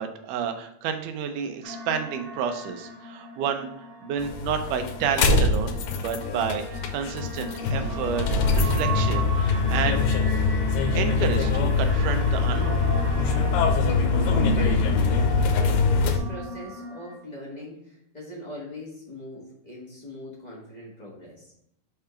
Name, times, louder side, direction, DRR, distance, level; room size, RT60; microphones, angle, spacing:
voice 1, 0.0-3.7 4.0-8.3 8.5-10.3 10.9-12.8, right 7 dB, 80° right, 7 dB, 2.2 m, -30 dB
sound 1, 1.6-17.2, equal, 55° right, 2.1 m, -35 dB
sound 2, 4.2-16.2, left 4 dB, 85° left, 2.3 m, -23 dB
voice 2, 14.6-15.1 15.4-21.5, left 1 dB, 30° left, -5 dB, 0.8 m, -41 dB
5.7 x 3.6 x 5.6 m, 0.74 s
omnidirectional pair, 3.8 m